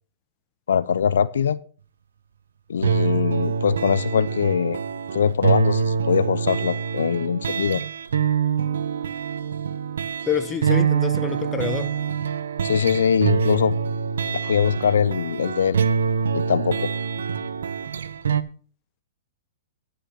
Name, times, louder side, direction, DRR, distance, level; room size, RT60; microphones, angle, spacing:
voice 1, 0.7-1.6 2.7-4.8 5.1-7.8 12.6-13.8 14.3-15.8 16.3-16.9, left 7 dB, 80° left, 0.5 m, -22 dB
sound 1, 2.8-18.4, right 6 dB, 80° right, 0.8 m, -25 dB
voice 2, 10.3-11.9, left 7 dB, 20° left, 0.8 m, -27 dB
11.5 x 5.9 x 5.6 m
hypercardioid pair, 125°, 0 cm